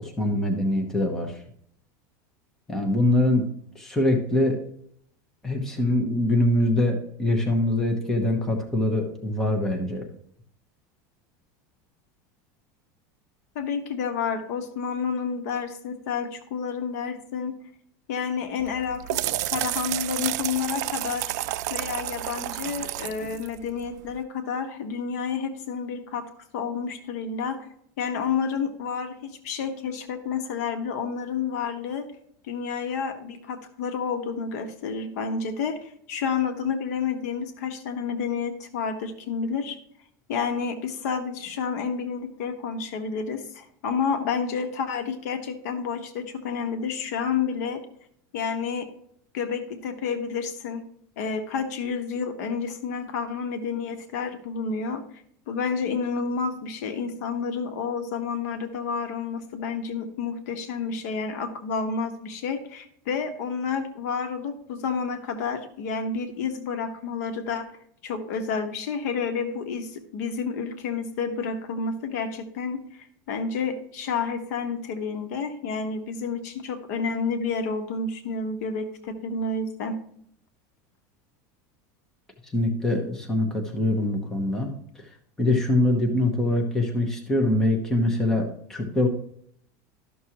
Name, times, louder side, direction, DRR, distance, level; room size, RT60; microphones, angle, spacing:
voice 1, 0.0-1.4 2.7-3.5 3.7-4.6 5.4-10.1 82.4-84.7 85.4-89.1, left 1 dB, 5° left, 1 dB, 0.9 m, -23 dB
voice 2, 13.5-17.5 18.1-21.3 21.7-26.2 26.5-27.7 28.0-32.1 32.5-39.8 40.3-47.8 48.3-48.9 49.3-50.8 51.2-55.0 55.5-67.7 68.0-80.0, left 5 dB, 65° left, 7 dB, 1.2 m, -30 dB
sound 1, 18.6-24.2, right 15 dB, 75° right, 0.4 m, -31 dB
12.5 x 6.2 x 2.9 m, 0.69 s
supercardioid pair, 165°, 9 cm